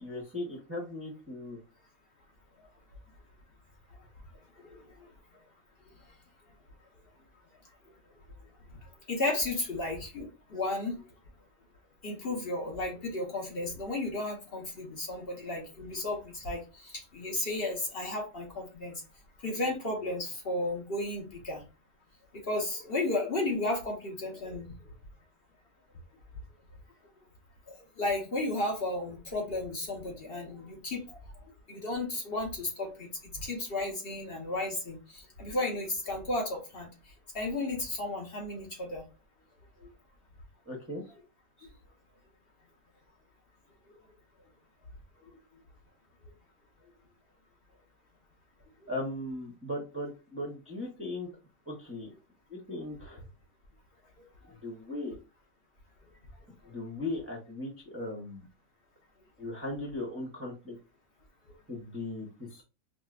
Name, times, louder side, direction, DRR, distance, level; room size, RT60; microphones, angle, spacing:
voice 1, 0.0-1.6 40.7-41.0 48.9-51.3 51.7-52.1 52.5-53.2 54.6-55.2 56.7-58.5 59.4-60.7 61.7-62.6, left 2 dB, 15° right, -2 dB, 0.6 m, -38 dB
voice 2, 9.1-11.0 12.0-19.0 19.4-21.6 22.5-24.7 28.0-31.0 31.7-36.9 37.3-39.0, left 2 dB, 50° left, 0 dB, 1.1 m, -33 dB
5.0 x 2.1 x 2.4 m, 0.30 s
omnidirectional pair, 1.4 m